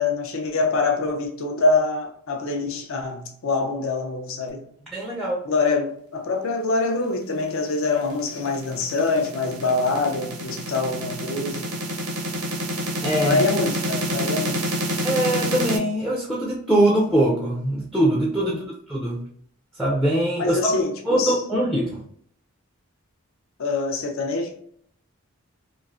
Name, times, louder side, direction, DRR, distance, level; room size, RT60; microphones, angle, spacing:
voice 1, 0.0-4.7 5.4-11.7 13.2-14.7 18.5-18.6 20.4-21.4 23.6-24.5, left 3 dB, 60° left, 0.5 m, -25 dB
voice 2, 4.9-5.4 13.0-13.4 15.0-18.6 18.9-19.2 19.8-20.7 21.1-22.0, right 1 dB, ahead, 0.3 m, -22 dB
sound 1, 7.7-15.8, right 1 dB, 85° right, 0.6 m, -28 dB
3.1 x 2.4 x 2.4 m
head